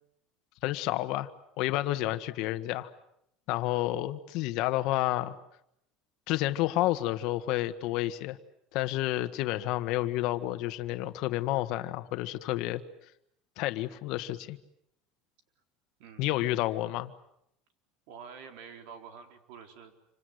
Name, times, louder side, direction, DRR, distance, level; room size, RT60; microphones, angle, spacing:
voice 1, 0.6-1.3 1.6-2.9 3.5-5.3 6.3-8.4 8.7-12.8 13.6-14.6 16.2-17.1, left 16 dB, 55° left, 10 dB, 1.6 m, -30 dB
voice 2, 16.0-16.4 18.1-19.9, right 6 dB, 65° right, 6 dB, 4.1 m, -48 dB
28.0 x 25.5 x 8.0 m, 0.77 s
cardioid pair, 155°, 0 cm